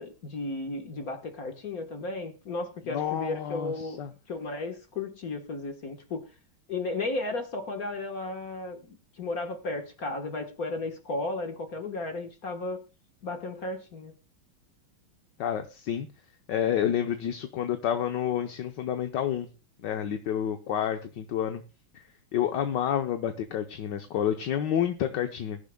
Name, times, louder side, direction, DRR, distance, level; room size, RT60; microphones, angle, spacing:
voice 1, 0.0-6.2 6.7-12.8 13.2-14.1, left 2 dB, 45° left, 5 dB, 1.6 m, -34 dB
voice 2, 2.9-4.1 15.4-16.1 16.5-19.5 19.8-21.6 22.3-25.6, left 9 dB, 65° left, 6 dB, 1.4 m, -29 dB
21.5 x 10.5 x 2.2 m, 0.31 s
omnidirectional pair, 2.4 m